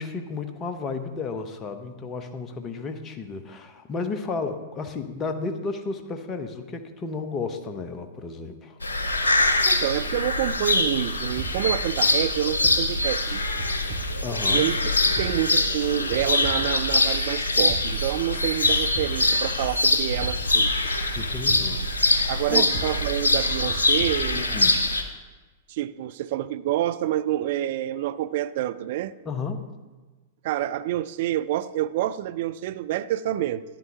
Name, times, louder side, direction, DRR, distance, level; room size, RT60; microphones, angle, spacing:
voice 1, 0.0-8.8 14.2-14.7 21.1-22.7 24.3-24.8 29.3-29.8, left 4 dB, 25° left, 0.9 m, -33 dB
sound 1, 8.8-25.0, left 2 dB, 75° left, 0.8 m, -24 dB
voice 2, 9.7-13.4 14.5-14.8 15.1-20.7 22.3-24.5 25.7-29.1 30.4-33.6, right 13 dB, 50° right, 0.3 m, -27 dB
sound 2, 11.1-24.2, right 6 dB, 35° right, 1.5 m, -37 dB
13.0 x 10.5 x 2.9 m
figure-of-eight pair, 100°, 0 cm